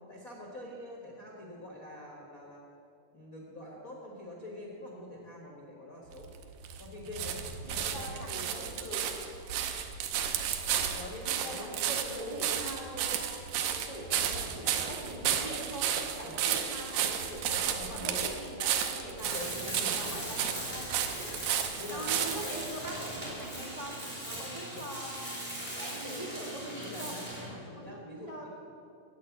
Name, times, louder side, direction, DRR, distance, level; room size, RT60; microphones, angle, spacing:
voice 1, 0.1-2.6 3.1-6.3 6.8-7.4 7.7-8.6 10.9-11.7 16.2-16.4 17.5-18.4 19.2-20.1 21.8-22.6 24.3-24.9 26.8-28.5, left 1 dB, 75° left, -3 dB, 0.7 m, -45 dB
sound 1, 6.1-22.7 23.4-23.5, right 9 dB, 80° right, 2.4 m, -33 dB
voice 2, 7.7-9.0 11.2-13.3 13.6-15.9 16.1-19.4 19.7-21.4 21.9-27.2 27.7-28.5, right 1 dB, 15° left, -3 dB, 1.1 m, -42 dB
Tools, 19.2-27.6, right 1 dB, 15° right, 3.0 m, -40 dB
8.6 x 8.2 x 9.1 m, 2.5 s
omnidirectional pair, 4.0 m